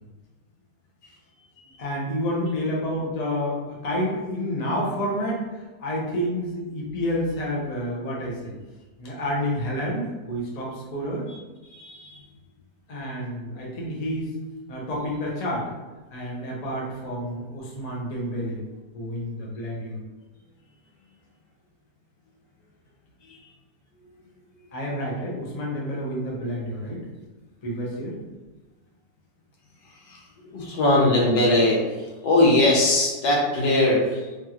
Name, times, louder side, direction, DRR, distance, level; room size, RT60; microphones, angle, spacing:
voice 1, 1.8-8.6 9.0-11.3 12.9-14.3 14.7-15.7 16.1-18.6 18.9-20.0 24.7-27.1 27.6-28.2, equal, 65° left, -4 dB, 0.4 m, -29 dB
voice 2, 11.7-12.1 23.3-23.4 30.1-30.2 30.4-31.8 32.2-34.4, left 1 dB, 85° left, -3 dB, 1.5 m, -20 dB
3.4 x 2.4 x 2.9 m, 1.2 s
omnidirectional pair, 1.9 m